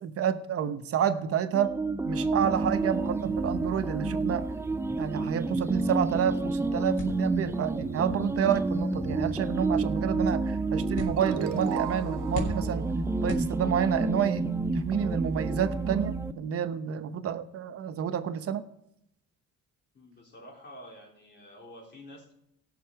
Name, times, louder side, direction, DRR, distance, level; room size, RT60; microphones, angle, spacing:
voice 1, 0.0-1.7 2.0-4.5 5.0-12.9 13.2-18.6, right 8 dB, 50° right, 10 dB, 1.0 m, -29 dB
sound 1, 1.5-16.3, right 3 dB, 10° right, 0.5 m, -30 dB
sound 2, 7.0-14.1, left 3 dB, 85° left, 3.6 m, -43 dB
sound 3, 11.2-14.4, right 12 dB, 85° right, 0.7 m, -39 dB
voice 2, 19.9-22.3, left 1 dB, 35° left, -2 dB, 3.9 m, -49 dB
17.0 x 6.9 x 4.6 m, 0.77 s
cardioid pair, 130°, 30 cm